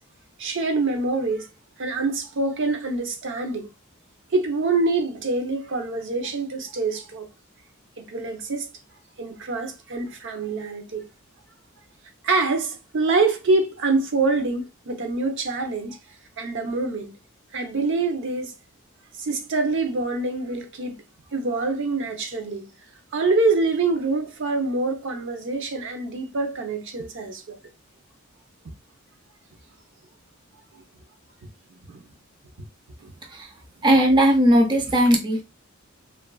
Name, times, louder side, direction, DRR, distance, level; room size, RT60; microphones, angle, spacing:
voice 1, 0.4-1.5 1.8-3.7 4.3-7.3 8.0-8.7 9.2-11.1 12.2-16.0 16.4-17.1 17.5-18.5 19.2-21.0 21.3-22.7 23.1-27.6 30.7-30.8 31.9-32.0 33.0-33.1, right 3 dB, 65° right, 0.6 m, -25 dB
voice 2, 33.8-35.4, equal, 20° right, 0.5 m, -18 dB
3.0 x 2.4 x 2.2 m
head